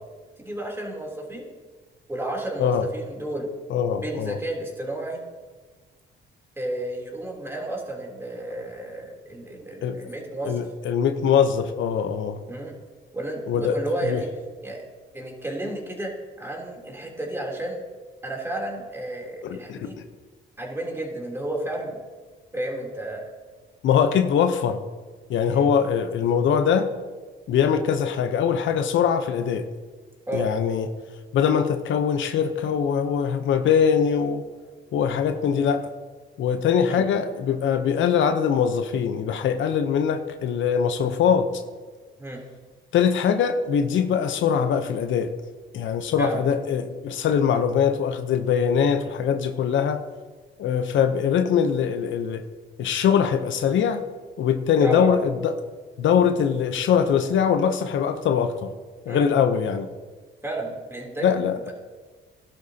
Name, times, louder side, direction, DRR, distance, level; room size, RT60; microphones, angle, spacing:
voice 1, 0.4-1.5 2.1-3.5 4.0-5.2 6.6-10.6 12.5-12.7 13.1-14.3 14.6-14.8 15.1-17.8 18.2-20.0 20.6-22.0 22.5-23.2 25.5-25.7 30.3-30.5 36.9-37.1 42.2-42.4 46.2-46.4 54.8-55.2 59.1-59.3 60.4-61.3 61.7-61.8, right 1 dB, 10° right, -1 dB, 3.3 m, -32 dB
voice 2, 3.7-4.4 9.8-10.0 10.4-12.4 13.5-13.8 14.0-14.2 19.4-19.9 23.8-24.8 25.3-26.9 27.5-29.7 30.3-30.9 31.3-34.4 34.9-35.9 36.4-41.6 42.9-45.3 45.7-50.0 50.6-52.4 52.8-54.0 54.4-55.5 56.0-58.7 59.1-59.9 61.2-61.6, left 7 dB, 75° left, 8 dB, 0.8 m, -22 dB
16.5 x 12.0 x 2.9 m, 1.4 s
cardioid pair, 90°, 20 cm